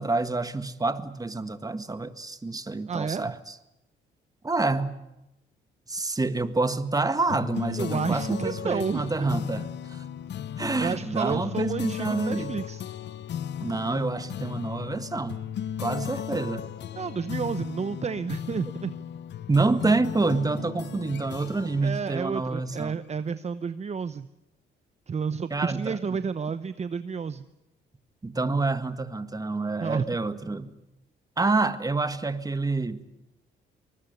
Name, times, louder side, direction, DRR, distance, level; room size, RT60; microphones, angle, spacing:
voice 1, 0.0-3.6 4.4-5.0 5.9-10.0 10.6-12.6 13.6-15.4 15.8-16.7 19.5-23.0 25.5-26.0 28.2-30.7 31.4-33.0, right 3 dB, 20° right, 1.8 m, -27 dB
voice 2, 2.9-3.3 7.8-9.3 10.8-12.8 17.0-18.9 21.8-24.3 25.1-27.5 29.8-30.2, right 6 dB, 35° right, 0.9 m, -31 dB
sound 1, 7.3-23.2, left 9 dB, 60° left, 0.9 m, -36 dB
24.0 x 20.0 x 9.6 m
cardioid pair, 90°, 20 cm